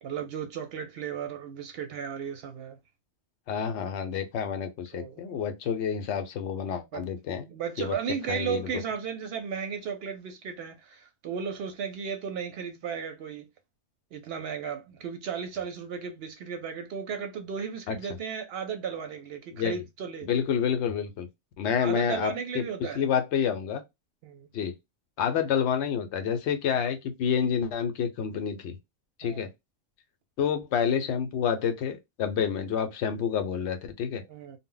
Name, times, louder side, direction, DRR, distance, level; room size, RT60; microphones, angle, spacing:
voice 1, 0.0-2.8 4.9-5.3 6.9-7.0 7.5-13.5 14.1-20.3 21.8-23.1 24.2-24.5 29.2-29.5 34.3-34.6, right 7 dB, 65° right, 0.7 m, -35 dB
voice 2, 3.5-7.5 7.8-7.9 8.3-8.6 17.9-18.0 19.5-19.8 20.2-21.3 21.6-22.6 23.0-23.8 24.5-24.7 25.2-28.8 29.2-29.5 30.4-34.2, left 7 dB, 75° left, 0.8 m, -28 dB
2.1 x 2.0 x 3.7 m
omnidirectional pair, 1.2 m